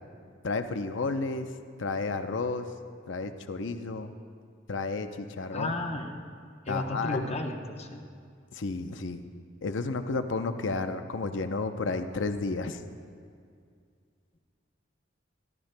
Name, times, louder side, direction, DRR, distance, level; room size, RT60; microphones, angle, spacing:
voice 1, 0.4-1.5 1.8-2.7 3.1-4.1 4.7-5.7 6.7-7.4 8.5-9.2 9.6-12.8, left 3 dB, 65° left, 8 dB, 0.6 m, -32 dB
voice 2, 5.5-6.2 6.7-8.0, left 2 dB, 35° left, 4 dB, 0.9 m, -33 dB
27.5 x 12.0 x 2.2 m, 2.3 s
head